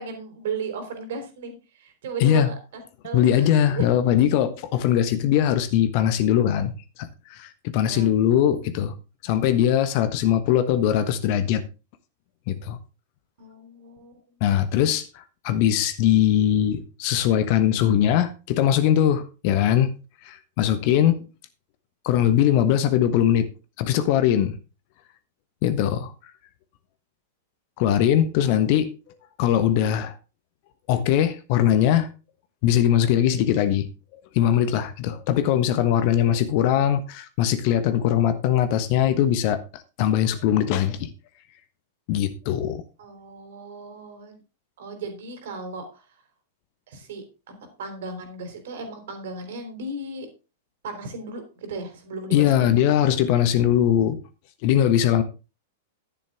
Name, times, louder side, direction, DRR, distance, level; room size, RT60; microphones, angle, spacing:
voice 1, 0.0-2.5 3.0-3.8 7.8-8.1 13.4-14.1 21.0-21.2 28.4-28.7 43.0-44.4 44.8-46.0 46.9-47.2 47.8-50.3 50.8-51.4 51.7-52.7, right 3 dB, 55° right, 3.4 m, -35 dB
voice 2, 3.1-6.7 7.0-9.0 9.2-11.6 12.5-12.8 14.4-19.9 20.2-21.2 22.0-23.5 23.8-24.6 25.6-26.1 27.8-28.9 29.4-30.1 30.9-32.1 32.6-33.9 34.3-41.1 42.1-42.8 52.3-54.2 54.6-55.2, left 10 dB, 45° left, 1.2 m, -21 dB
11.0 x 9.9 x 3.6 m
figure-of-eight pair, 95°, 0 cm